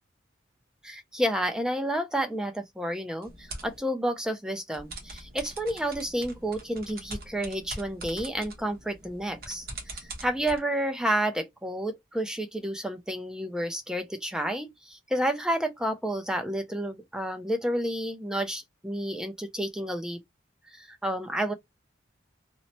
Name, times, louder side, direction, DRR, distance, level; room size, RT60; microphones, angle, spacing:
voice 1, 0.8-20.2 20.7-21.5, right 1 dB, 5° right, 0.4 m, -30 dB
sound 1, 3.2-3.8 4.7-10.6, right 2 dB, 50° right, 1.0 m, -43 dB
2.9 x 2.0 x 2.7 m
head